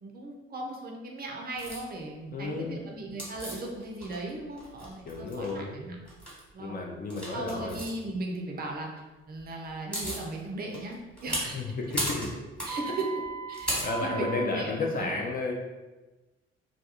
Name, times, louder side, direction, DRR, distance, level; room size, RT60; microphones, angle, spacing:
voice 1, 0.0-6.0 6.5-6.8 7.3-8.9 9.3-11.6 12.6-13.1 13.5-15.1, right 2 dB, 30° right, 0 dB, 0.5 m, -37 dB
sound 1, 1.6-1.8 3.2-4.3 4.6-5.5 6.1-6.4 7.1-7.9 9.4-9.5 9.7-10.3 10.7-14.5, right 1 dB, 5° left, 1.2 m, -35 dB
voice 2, 2.3-2.9 5.1-5.7 6.6-7.8 11.5-12.3 13.8-15.5, left 3 dB, 30° left, 0 dB, 0.4 m, -32 dB
2.3 x 2.2 x 2.7 m, 1.1 s
figure-of-eight pair, 45°, 32 cm